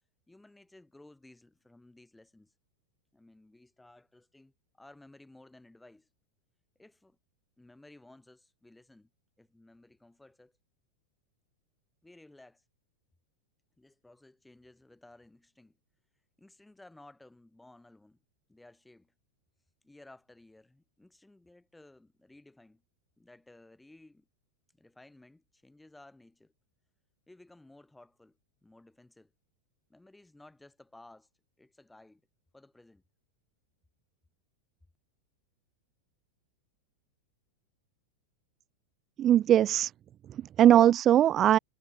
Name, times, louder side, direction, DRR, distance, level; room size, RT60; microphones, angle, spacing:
voice 1, 0.3-2.5 3.1-6.1 6.8-7.2 7.6-9.1 9.4-10.5 12.0-12.6 13.8-15.8 16.4-18.2 18.5-19.1 19.8-22.8 23.2-24.3 24.8-26.5 27.3-29.3 29.9-31.3 31.6-32.2 32.5-33.0, left 2 dB, 5° left, 6.9 m, -57 dB
voice 2, 39.2-39.9 40.3-41.6, right 11 dB, 30° right, 0.3 m, -21 dB
figure-of-eight pair, 90°, 0 cm